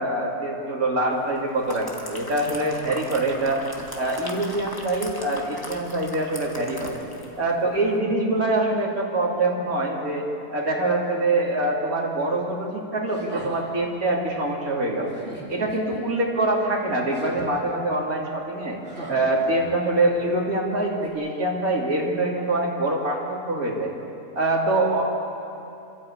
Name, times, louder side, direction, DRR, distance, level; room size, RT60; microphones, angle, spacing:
voice 1, 0.0-3.6 4.0-7.0 7.4-15.2 15.5-18.8 19.1-23.9 24.3-25.0, right 2 dB, 85° right, -3 dB, 3.3 m, -24 dB
sound 1, 1.3-7.4 7.7-7.9, left 1 dB, 15° left, 1.8 m, -39 dB
sound 2, 13.1-13.9 15.1-16.0 17.1-17.7 18.8-20.0 21.0-21.1, right 2 dB, 45° right, 3.1 m, -40 dB
28.0 x 13.0 x 8.7 m, 2.8 s
omnidirectional pair, 1.5 m